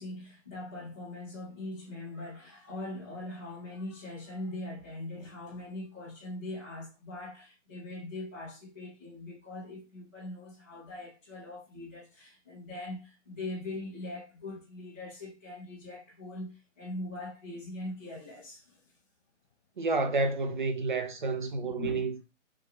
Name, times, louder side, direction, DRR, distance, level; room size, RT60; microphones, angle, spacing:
voice 1, 0.0-18.9 21.2-21.3 21.6-22.1, left 2 dB, 15° left, 0.6 m, -41 dB
voice 2, 19.8-22.2, right 3 dB, 40° right, 0.6 m, -30 dB
3.2 x 2.9 x 3.2 m
hypercardioid pair, 165°, 38 cm